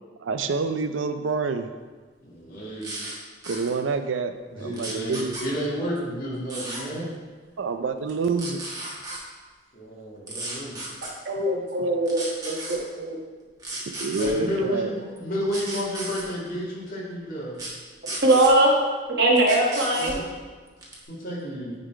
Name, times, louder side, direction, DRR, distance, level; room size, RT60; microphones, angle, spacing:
voice 1, 0.2-1.7 3.4-5.3 7.6-8.9 13.9-14.9, right 4 dB, 85° right, 9 dB, 0.5 m, -28 dB
voice 2, 2.2-2.9 4.5-7.1 9.7-10.8 14.2-17.6 20.0-20.3 21.1-21.7, equal, 45° left, -6 dB, 2.4 m, -31 dB
sound 1, 2.8-3.1 3.4-3.7 4.7-5.4 6.5-6.8 8.1-9.2 10.3-11.1 12.0-12.8 13.6-14.3 15.5-16.2 17.5-17.7 18.0-18.5 19.3-20.2 20.8-21.0, right 2 dB, 20° right, 1.4 m, -34 dB
voice 3, 11.0-13.2 18.0-18.7 19.1-20.2, right 1 dB, 60° right, -1 dB, 1.3 m, -21 dB
9.5 x 4.0 x 4.6 m, 1.4 s
head